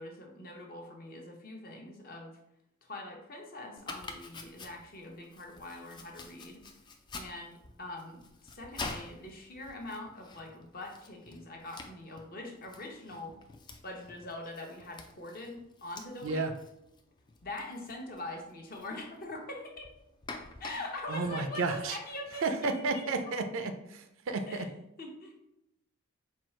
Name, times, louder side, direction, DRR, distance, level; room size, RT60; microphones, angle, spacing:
voice 1, 0.0-2.4 2.8-6.6 7.1-13.3 13.8-16.5 17.4-19.9 20.6-23.1 24.5-24.7 25.0-25.3, left 2 dB, 40° left, 1 dB, 0.8 m, -43 dB
Domestic sounds home sounds, 3.8-22.2, left 3 dB, 20° left, 0.3 m, -48 dB
voice 2, 21.1-22.0 22.4-24.7, right 3 dB, 60° right, 7 dB, 0.4 m, -32 dB
4.5 x 2.4 x 4.3 m, 0.82 s
head